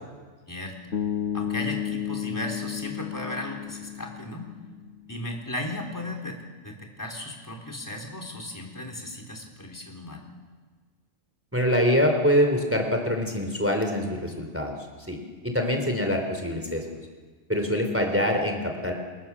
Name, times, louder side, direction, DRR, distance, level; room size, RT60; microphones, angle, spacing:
voice 1, 0.5-0.8 1.3-4.5 5.1-10.3, left 1 dB, 15° left, 1 dB, 4.0 m, -36 dB
Bass guitar, 0.9-5.0, left 9 dB, 80° left, 1.7 m, -32 dB
voice 2, 11.5-14.7 15.1-15.2 15.4-16.8 17.5-18.9, equal, 10° right, 4 dB, 3.8 m, -24 dB
28.5 x 26.5 x 7.5 m, 1.4 s
omnidirectional pair, 1.2 m